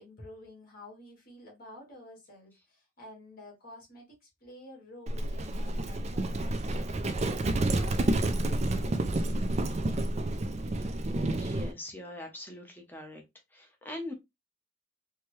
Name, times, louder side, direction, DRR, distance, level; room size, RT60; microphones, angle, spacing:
voice 1, 0.0-9.3, left 1 dB, 50° left, 1.8 m, -51 dB
Livestock farm animals working animals, 5.1-11.7, right 2 dB, 35° right, 0.4 m, -29 dB
voice 2, 11.3-13.2 13.5-14.1, left 1 dB, 10° left, 0.9 m, -42 dB
4.4 x 2.2 x 3.1 m
head